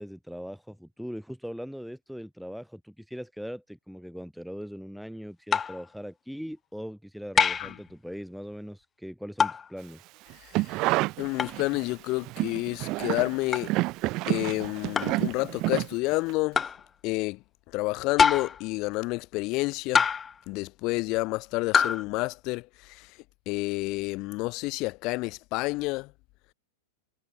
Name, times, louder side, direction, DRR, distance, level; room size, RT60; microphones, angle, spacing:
voice 1, 0.0-10.1, equal, ahead, 6.2 m, -40 dB
sound 1, 5.5-5.8 7.4-7.8 9.4-9.7 11.4-11.6 13.5-13.7 15.0-15.2 16.5-16.8 18.2-18.6 19.9-20.4 21.7-22.0, left 6 dB, 20° left, 0.6 m, -24 dB
sound 2, 10.3-11.9 12.2-16.3 16.6-16.7, right 21 dB, 45° right, 2.2 m, -29 dB
voice 2, 10.4-10.8 11.2-13.7 14.3-16.6 17.0-17.4 17.7-20.1 20.5-23.2 23.4-26.1, left 23 dB, 45° left, 3.3 m, -30 dB
hypercardioid pair, 110°, 0 cm